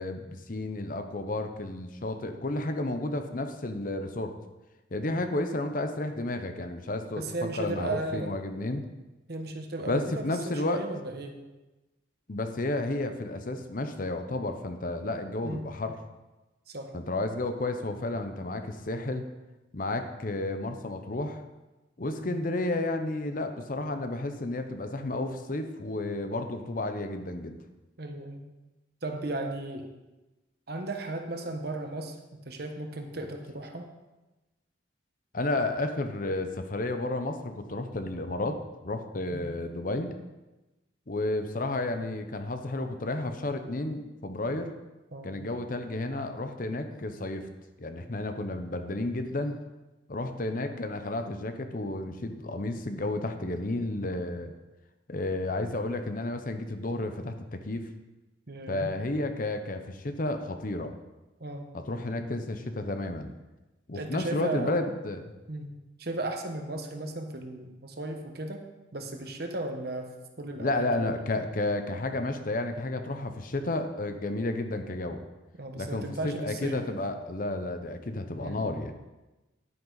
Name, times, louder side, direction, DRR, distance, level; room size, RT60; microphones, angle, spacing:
voice 1, 0.0-4.3 4.9-8.8 9.9-10.8 12.3-15.9 16.9-19.3 19.7-21.4 22.0-27.6 35.3-40.1 41.1-44.7 45.2-47.5 47.8-49.6 50.1-54.5 55.1-57.9 58.7-60.9 61.7-63.3 63.9-65.3 70.6-75.2 75.8-78.9, left 2 dB, 45° left, 7 dB, 0.8 m, -32 dB
voice 2, 7.2-8.4 9.3-11.4 15.4-15.7 16.7-16.9 22.2-22.5 28.0-28.5 29.0-29.9 30.7-32.2 32.4-33.9 39.3-39.5 45.1-45.4 58.5-59.0 61.4-61.6 63.9-64.8 65.5-65.7 66.0-68.6 68.9-71.3 75.6-76.8 78.4-78.7, right 2 dB, 55° right, 5 dB, 1.2 m, -35 dB
11.0 x 9.3 x 4.0 m, 1.1 s
head